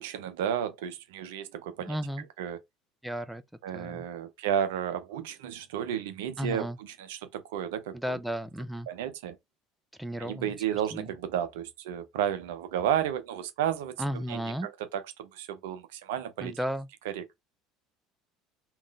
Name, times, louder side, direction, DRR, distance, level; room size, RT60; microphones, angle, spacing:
voice 1, 0.0-2.0 2.4-2.6 3.6-8.2 8.9-9.4 10.2-16.6 17.0-17.2, right 9 dB, 70° right, 0.5 m, -32 dB
voice 2, 1.8-2.2 3.0-3.4 3.7-4.0 6.4-6.8 7.9-8.9 10.0-11.1 14.0-14.7 16.4-16.9, equal, 5° right, 0.4 m, -34 dB
3.5 x 2.4 x 3.4 m
figure-of-eight pair, 65°, 0 cm